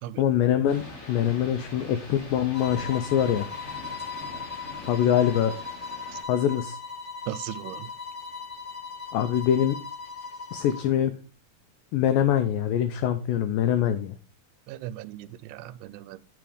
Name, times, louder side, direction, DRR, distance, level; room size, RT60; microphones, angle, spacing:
voice 1, 0.2-3.5 4.9-5.6 6.3-6.8 9.1-9.8 10.5-11.1 11.9-14.2, left 10 dB, 90° left, 10 dB, 1.9 m, -24 dB
sound 1, 0.7-6.2, left 2 dB, 40° left, 3.5 m, -43 dB
sound 2, 2.5-10.9, left 4 dB, 20° left, 1.5 m, -38 dB
voice 2, 7.3-7.9 14.7-16.2, right 13 dB, 85° right, 14 dB, 2.6 m, -37 dB
9.3 x 5.1 x 4.9 m, 0.38 s
omnidirectional pair, 4.6 m